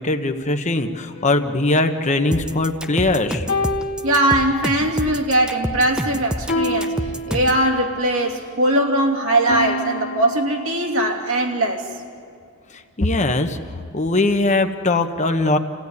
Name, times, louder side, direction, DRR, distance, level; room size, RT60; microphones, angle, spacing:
voice 1, 0.0-3.5 12.7-13.6 13.9-15.6, left 2 dB, 30° left, 7 dB, 1.0 m, -20 dB
sound 1, 1.2-2.9 3.5-4.9 6.5-7.9 9.5-11.0, left 1 dB, 60° left, 2.2 m, -29 dB
sound 2, 2.3-7.6, equal, 5° right, 0.6 m, -28 dB
voice 2, 4.0-7.0 7.3-11.9, right 1 dB, 65° right, 1 dB, 2.9 m, -20 dB
28.5 x 16.5 x 9.6 m, 2.4 s
head